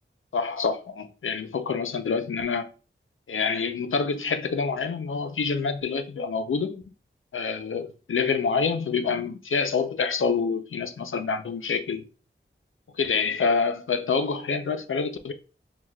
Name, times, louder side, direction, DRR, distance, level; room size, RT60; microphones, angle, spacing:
voice 1, 0.3-2.7 3.3-6.8 7.3-12.1 13.0-15.3, left 5 dB, 80° left, 0.5 m, -27 dB
6.1 x 2.3 x 2.2 m
wide cardioid pair, 55°, 21 cm